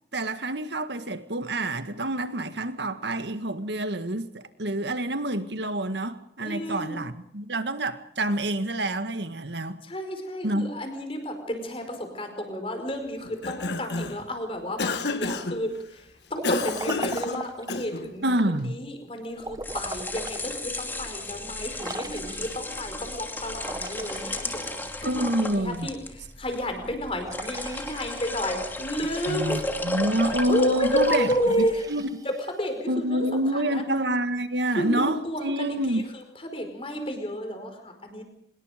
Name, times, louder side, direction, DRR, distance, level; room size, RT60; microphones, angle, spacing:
voice 1, 0.1-9.8 10.4-10.7 18.2-18.7 25.0-25.9 29.3-31.3 31.9-32.1 32.9-36.0, right 1 dB, 80° right, 10 dB, 1.8 m, -27 dB
voice 2, 6.4-7.0 9.8-29.6 30.4-31.8 32.2-33.3 33.5-33.8 34.7-38.2, equal, 30° left, 5 dB, 5.1 m, -31 dB
Cough, 13.2-14.3 14.8-15.6 16.4-18.1, left 3 dB, 75° left, 1.7 m, -30 dB
Liquid, 16.3-17.9 19.4-20.5 20.9-21.0 21.8-22.8 23.6-25.2 27.2-28.6 31.1-32.8, right 2 dB, 20° right, 0.9 m, -39 dB
sound 1, 19.4-31.8, left 2 dB, 10° left, 2.5 m, -35 dB
25.5 x 21.5 x 5.2 m, 0.76 s
head